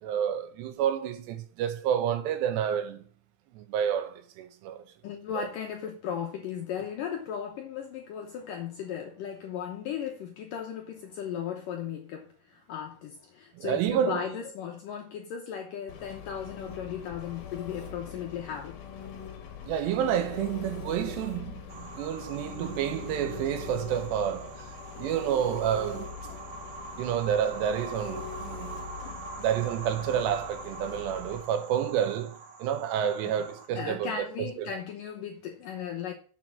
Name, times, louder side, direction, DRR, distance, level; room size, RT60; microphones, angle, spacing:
voice 1, 0.0-3.0 3.5-4.8 5.3-5.5 13.6-14.2 19.7-24.7 25.0-26.2 27.0-28.7 29.4-34.7, right 9 dB, 80° right, 3.1 m, -29 dB
voice 2, 5.0-18.8 33.8-36.1, left 8 dB, 75° left, 2.0 m, -36 dB
Engine, 15.9-31.4, left 7 dB, 60° left, 2.7 m, -42 dB
sound 1, 21.7-33.7, right 4 dB, 60° right, 2.2 m, -44 dB
7.5 x 6.2 x 7.3 m
omnidirectional pair, 5.1 m